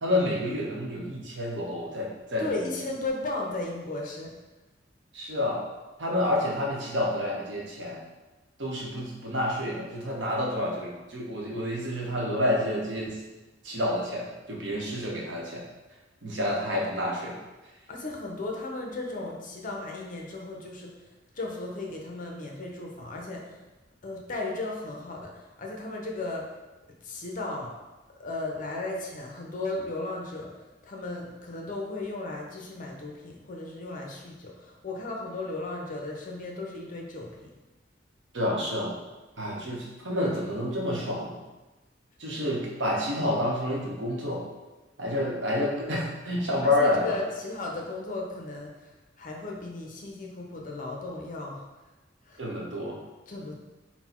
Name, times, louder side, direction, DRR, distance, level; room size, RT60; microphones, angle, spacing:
voice 1, 0.0-2.5 5.1-5.6 6.0-8.0 8.6-13.2 13.6-15.6 16.2-17.4 38.3-39.0 39.4-41.4 42.2-44.4 45.0-47.2 52.4-53.0, left 1 dB, 70° right, -2 dB, 0.9 m, -29 dB
voice 2, 2.4-4.3 17.9-21.1 21.3-23.6 24.0-26.5 27.0-27.7 28.2-30.6 30.8-37.5 46.6-51.6 52.2-52.4 53.3-53.6, left 2 dB, 45° left, 0 dB, 0.6 m, -35 dB
3.9 x 2.2 x 4.3 m, 1.1 s
head